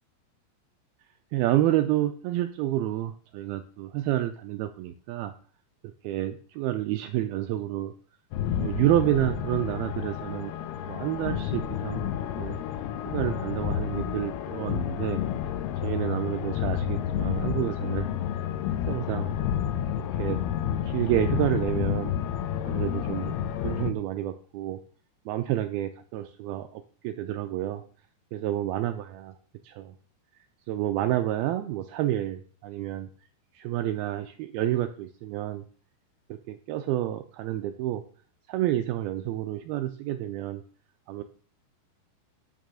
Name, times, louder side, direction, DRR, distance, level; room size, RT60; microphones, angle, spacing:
voice 1, 1.3-5.3 6.0-7.9 8.5-10.5 10.9-12.1 12.4-12.6 13.1-15.2 15.8-18.1 18.9-19.4 20.0-20.4 20.8-22.1 22.6-23.3 23.6-24.8 25.3-27.8 28.3-29.3 29.6-29.9 30.7-33.1 33.5-35.6 36.3-38.0 38.5-40.6 41.1-41.2, right 13 dB, 85° right, 9 dB, 2.1 m, -29 dB
sound 1, 8.3-23.9, left 10 dB, 80° left, 2.5 m, -30 dB
9.4 x 6.5 x 6.2 m, 0.44 s
omnidirectional pair, 5.0 m